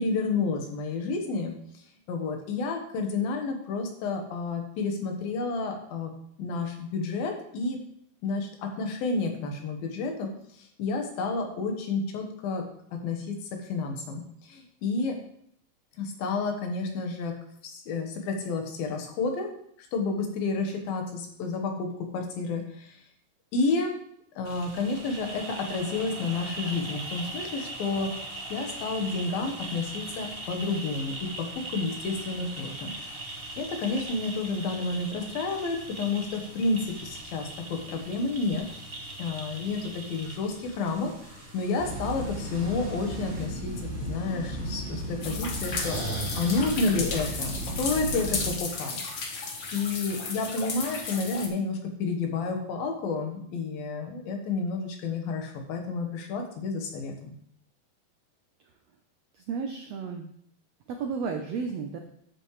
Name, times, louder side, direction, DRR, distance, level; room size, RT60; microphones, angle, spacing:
voice 1, 0.0-1.5 2.1-6.1 6.4-7.8 8.2-10.3 10.6-12.6 12.9-14.2 14.5-15.2 16.0-17.3 17.6-19.5 19.9-21.9 22.1-23.0 23.5-23.9 24.4-28.1 28.5-32.9 33.6-38.7 39.2-43.7 44.0-46.0 46.4-49.0 49.7-57.3, left 3 dB, 85° left, 3 dB, 3.2 m, -30 dB
sound 1, 24.4-43.5, right 2 dB, 35° right, 0.8 m, -40 dB
sound 2, 41.8-48.5, right 1 dB, ahead, 3.8 m, -34 dB
sound 3, 45.2-51.5, left 4 dB, 65° left, 1.1 m, -34 dB
voice 2, 59.4-60.2 60.9-62.0, right 5 dB, 85° right, 4 dB, 1.5 m, -32 dB
12.0 x 8.2 x 3.3 m, 0.68 s
omnidirectional pair, 4.1 m